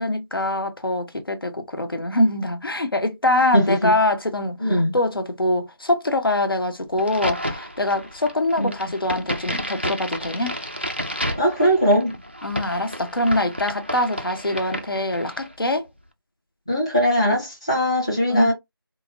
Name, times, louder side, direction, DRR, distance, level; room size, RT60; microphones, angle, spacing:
voice 1, 0.0-10.5 12.4-15.9 18.3-18.5, left 1 dB, 65° left, 1.1 m, -24 dB
voice 2, 3.5-3.9 4.6-4.9 8.6-8.7 11.4-12.1 16.7-18.5, equal, 15° left, 0.7 m, -20 dB
Crack, 7.0-15.5, equal, 25° right, 0.4 m, -31 dB
4.8 x 2.0 x 2.6 m
figure-of-eight pair, 175°, 12 cm